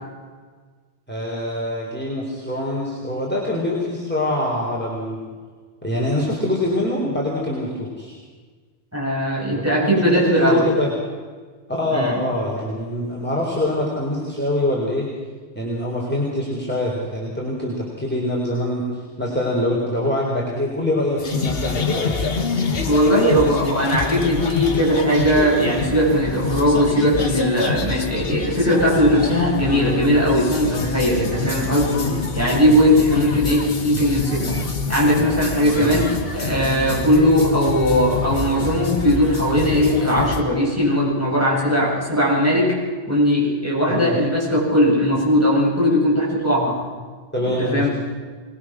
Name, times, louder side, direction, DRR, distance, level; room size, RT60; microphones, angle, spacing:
voice 1, 1.1-5.2 5.8-8.2 9.5-9.6 10.0-10.9 11.7-15.1 15.5-22.2 31.3-32.1 35.8-36.0 43.9-44.1 47.3-47.9, left 1 dB, 10° left, -4 dB, 4.0 m, -24 dB
voice 2, 8.9-10.7 11.9-12.2 22.8-31.9 32.3-34.6 34.9-36.1 36.3-42.8 43.1-46.8 47.4-47.9, equal, 10° right, -5 dB, 7.7 m, -19 dB
sound 1, 21.2-40.4, left 4 dB, 55° left, 1.7 m, -26 dB
24.5 x 20.5 x 6.3 m, 1.5 s
omnidirectional pair, 1.2 m